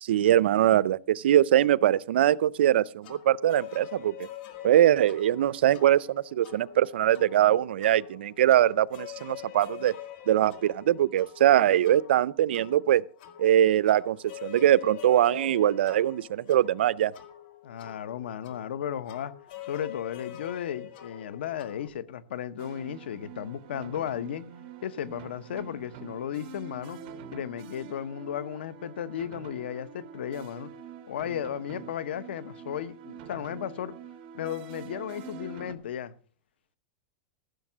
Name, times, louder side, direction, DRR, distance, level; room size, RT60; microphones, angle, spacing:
voice 1, 0.0-4.3 4.6-9.9 10.3-13.0 13.4-17.1, right 12 dB, 85° right, 0.5 m, -22 dB
sound 1, 3.0-21.9, left 12 dB, 60° left, 2.0 m, -45 dB
voice 2, 17.6-19.3 19.6-24.4 24.8-27.0 27.3-30.7 31.1-33.9 34.3-36.1, left 10 dB, 90° left, 0.9 m, -35 dB
sound 2, 22.6-35.7, right 7 dB, 50° right, 1.6 m, -45 dB
15.0 x 6.7 x 6.1 m
supercardioid pair, 145°, 6 cm